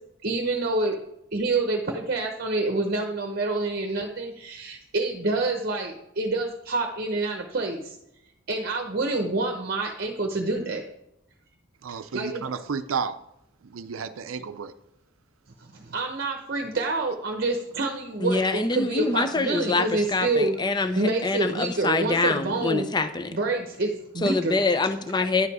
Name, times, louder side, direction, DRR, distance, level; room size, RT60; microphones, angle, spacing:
voice 1, 0.2-1.0 1.3-8.0 8.5-10.8 11.9-12.6 15.6-22.9 23.3-24.5, right 2 dB, 50° right, 3 dB, 0.8 m, -27 dB
voice 2, 11.8-13.2 13.7-14.7, right 6 dB, 90° right, 10 dB, 0.5 m, -32 dB
voice 3, 18.2-23.4 24.2-25.5, left 3 dB, 20° left, 10 dB, 0.6 m, -25 dB
10.5 x 4.9 x 4.8 m, 0.83 s
head